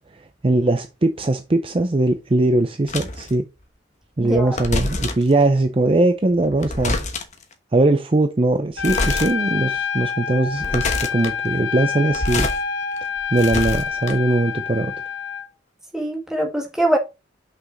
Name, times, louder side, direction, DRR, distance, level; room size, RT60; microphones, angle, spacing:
voice 1, 0.4-3.4 4.2-7.0 7.7-12.5 13.3-14.9, right 2 dB, 30° right, 0.5 m, -20 dB
sound 1, 2.9-3.3 4.4-5.3 6.4-7.4 8.8-9.3 9.8-9.9 10.5-11.3 12.0-12.6 13.0-14.4, left 2 dB, 40° left, 1.1 m, -26 dB
voice 2, 4.2-4.6 15.9-17.0, right 1 dB, 5° right, 1.7 m, -22 dB
Trumpet, 8.8-15.5, left 6 dB, 65° left, 0.9 m, -27 dB
5.9 x 5.8 x 4.0 m
head